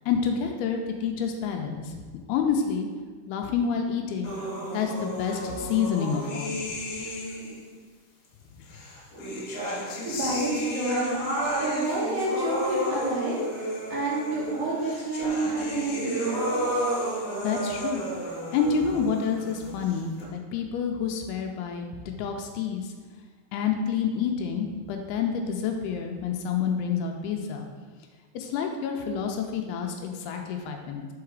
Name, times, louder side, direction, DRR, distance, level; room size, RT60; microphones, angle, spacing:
voice 1, 0.1-2.0 2.3-2.9 3.3-4.3 4.7-6.6 17.4-18.0 18.5-22.9 23.5-27.7 28.3-31.1, left 6 dB, 85° left, 3 dB, 2.3 m, -28 dB
sound 1, 4.2-7.7 8.7-20.2, equal, 60° left, 2.2 m, -32 dB
voice 2, 10.0-16.4, right 2 dB, 60° right, -6 dB, 2.3 m, -29 dB
6.2 x 4.8 x 4.7 m, 1.4 s
omnidirectional pair, 5.1 m